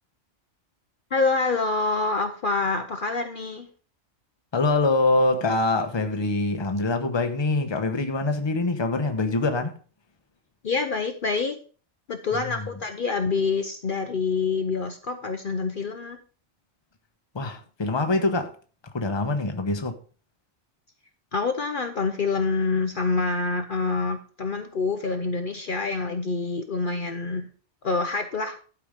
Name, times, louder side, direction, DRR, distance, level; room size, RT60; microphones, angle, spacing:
voice 1, 1.1-3.7 10.6-11.6 12.1-16.2 21.3-27.5 27.8-28.6, left 4 dB, 50° left, 0.9 m, -26 dB
voice 2, 4.5-9.7 12.5-12.6 17.3-18.5 18.9-19.9, left 2 dB, 25° left, 0.9 m, -24 dB
12.0 x 4.8 x 5.1 m
omnidirectional pair, 1.2 m